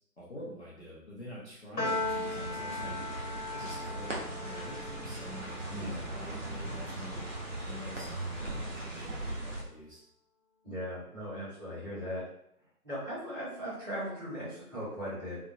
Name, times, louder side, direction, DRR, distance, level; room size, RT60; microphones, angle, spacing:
voice 1, 0.2-3.0 3.5-7.2 7.6-10.0, equal, 45° left, -7 dB, 0.6 m, -47 dB
Piano, 1.8-8.3, left 2 dB, 80° left, 1.1 m, -39 dB
sound 1, 1.8-9.6, right 1 dB, 50° right, 0.7 m, -39 dB
voice 2, 10.6-12.2 12.8-15.4, equal, 15° right, -17 dB, 1.2 m, -38 dB
2.9 x 2.1 x 2.4 m, 0.75 s
figure-of-eight pair, 155°, 48 cm